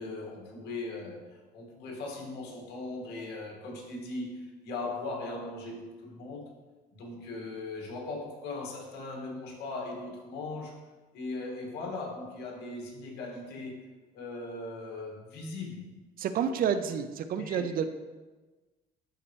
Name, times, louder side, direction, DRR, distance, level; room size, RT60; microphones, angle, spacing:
voice 1, 0.0-6.5 6.9-10.8 11.1-13.8 14.1-15.9 17.3-17.7, left 2 dB, 75° left, -1 dB, 1.8 m, -39 dB
voice 2, 16.2-17.9, right 7 dB, 60° right, 10 dB, 0.6 m, -29 dB
11.5 x 4.4 x 3.1 m, 1.3 s
cardioid pair, 110°, 17 cm